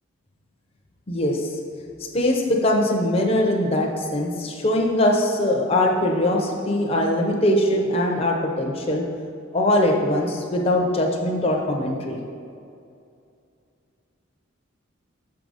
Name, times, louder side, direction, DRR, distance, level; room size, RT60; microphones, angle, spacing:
voice 1, 1.1-1.5 2.0-9.0 9.5-12.2, left 1 dB, 30° left, 0 dB, 0.6 m, -21 dB
6.8 x 4.8 x 4.0 m, 2.5 s
head